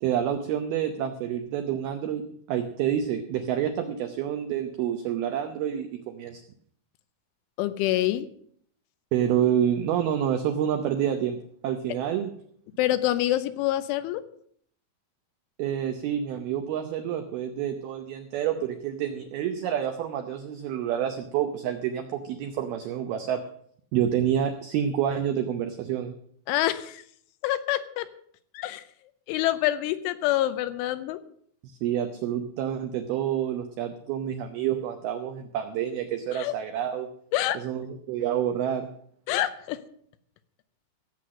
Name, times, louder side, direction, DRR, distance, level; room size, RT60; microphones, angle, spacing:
voice 1, 0.0-2.2 2.5-6.4 9.1-12.3 15.6-23.4 23.9-26.1 31.6-37.1 37.5-38.9, right 9 dB, 90° right, 7 dB, 2.1 m, -28 dB
voice 2, 7.6-8.3 12.8-14.2 26.5-27.0 27.4-28.1 28.5-28.8 29.3-31.2 36.3-36.5 37.3-37.6 39.3-39.8, left 14 dB, 85° left, 12 dB, 3.1 m, -26 dB
17.0 x 7.7 x 6.4 m, 0.63 s
omnidirectional pair, 5.6 m